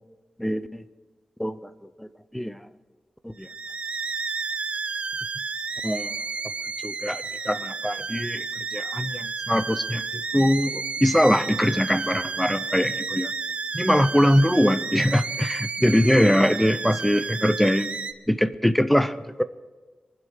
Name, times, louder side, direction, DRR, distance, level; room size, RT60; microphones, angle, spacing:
voice 1, 0.4-0.8 1.4-1.7 2.0-2.1 2.3-2.7 3.2-3.5 5.8-6.2 6.8-10.0 10.3-13.3 13.7-18.0 18.3-19.4, equal, 5° left, 14 dB, 0.5 m, -22 dB
sound 1, 3.4-18.1, right 4 dB, 50° right, 0.7 m, -32 dB
23.5 x 8.0 x 6.4 m, 1.3 s
wide cardioid pair, 140°, 3 cm